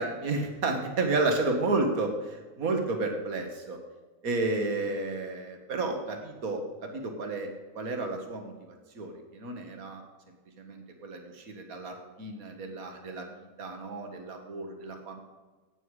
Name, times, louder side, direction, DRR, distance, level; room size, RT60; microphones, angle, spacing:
voice 1, 0.0-3.8 4.2-7.5 7.8-10.0 10.6-15.2, right 3 dB, 65° right, 3 dB, 2.1 m, -32 dB
17.5 x 9.4 x 4.9 m, 1.2 s
omnidirectional pair, 1.6 m